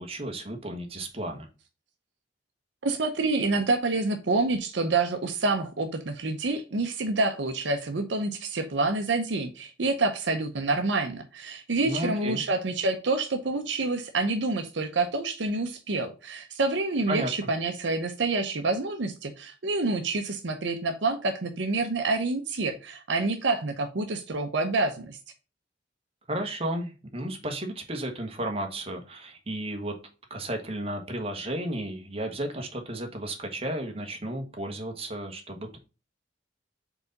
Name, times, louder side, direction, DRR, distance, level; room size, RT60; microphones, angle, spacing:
voice 1, 0.0-1.5 11.8-12.4 17.1-17.3 26.3-30.0 30.3-35.8, right 1 dB, 30° right, 3 dB, 1.2 m, -33 dB
voice 2, 2.8-25.2, right 3 dB, 65° right, 6 dB, 0.7 m, -27 dB
4.8 x 3.9 x 5.1 m, 0.32 s
head